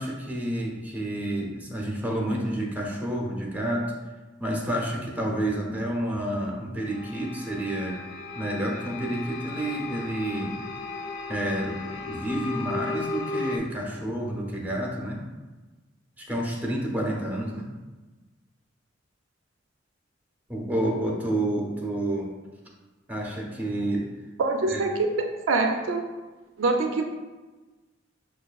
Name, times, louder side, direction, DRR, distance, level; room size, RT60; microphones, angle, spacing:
voice 1, 0.0-3.9 4.4-8.0 8.3-10.6 11.3-15.2 16.2-17.7 20.5-22.3 23.1-24.1 24.7-24.8, right 1 dB, 10° right, -1 dB, 0.6 m, -29 dB
sound 1, 6.8-13.6, left 3 dB, 65° left, 0.5 m, -35 dB
voice 2, 24.4-24.9 25.5-26.0 26.6-27.0, right 3 dB, 80° right, 4 dB, 0.4 m, -24 dB
5.8 x 2.3 x 2.3 m, 1.2 s
head